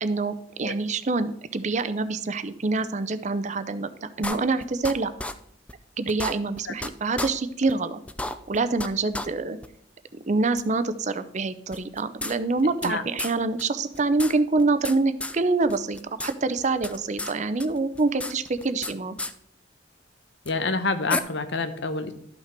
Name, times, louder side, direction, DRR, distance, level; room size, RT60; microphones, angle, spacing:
voice 1, 0.0-5.1 6.0-8.0 8.5-9.6 10.3-19.2, right 3 dB, 40° right, 12 dB, 0.6 m, -26 dB
sound 1, 4.2-4.9 5.2-5.3 5.7-5.8 6.1-6.9 7.2-7.3 7.7-7.8 8.1-8.9 9.1-9.3 9.6-9.7 10.6-10.7 11.7-12.9 13.2-13.3 13.6-13.7 13.9-15.0 15.2-15.4 15.7-16.3 16.6-17.3 17.6-18.9 19.2-19.3 20.5-20.6 21.1-21.2, left 2 dB, 5° left, 0.4 m, -32 dB
voice 2, 20.4-22.1, left 3 dB, 80° left, 10 dB, 0.9 m, -27 dB
12.5 x 5.9 x 4.4 m, 0.66 s
head